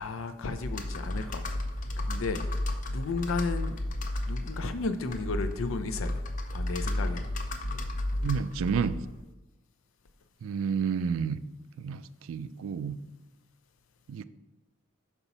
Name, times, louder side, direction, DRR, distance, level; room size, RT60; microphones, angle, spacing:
voice 1, 0.0-1.6 2.0-2.4 2.9-3.8 4.3-6.2 6.5-7.3, left 3 dB, 90° left, 9 dB, 0.5 m, -33 dB
Computer keyboard, 0.6-9.2, left 1 dB, 40° left, 0.5 m, -33 dB
voice 2, 8.2-9.0 10.4-11.4 11.8-12.0 12.3-13.0 14.1-14.2, right 6 dB, 85° right, 15 dB, 0.3 m, -30 dB
5.8 x 5.5 x 4.1 m, 1.1 s
head